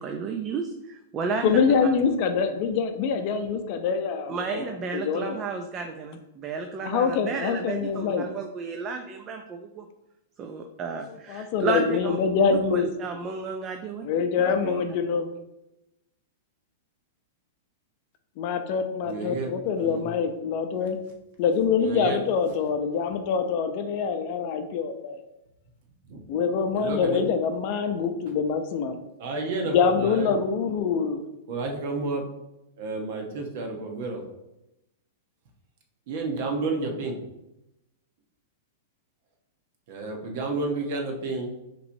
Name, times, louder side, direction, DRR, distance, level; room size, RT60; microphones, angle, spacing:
voice 1, 0.0-1.6 4.3-9.9 10.4-12.2 12.5-14.1 14.4-15.0, right 4 dB, 25° right, 4 dB, 0.4 m, -32 dB
voice 2, 1.4-4.4 4.9-5.4 6.8-8.3 11.3-12.9 14.0-15.3 18.4-21.0 21.4-25.2 26.3-29.0 29.6-31.2, left 6 dB, 45° left, 7 dB, 0.5 m, -25 dB
voice 3, 19.0-20.1 21.8-22.2 26.1-26.2 26.8-27.3 29.2-30.3 31.5-32.2 32.8-34.2 36.1-37.2 39.9-41.5, right 3 dB, 55° right, 2 dB, 1.0 m, -31 dB
5.6 x 3.1 x 2.7 m, 0.91 s
hypercardioid pair, 140°, 0 cm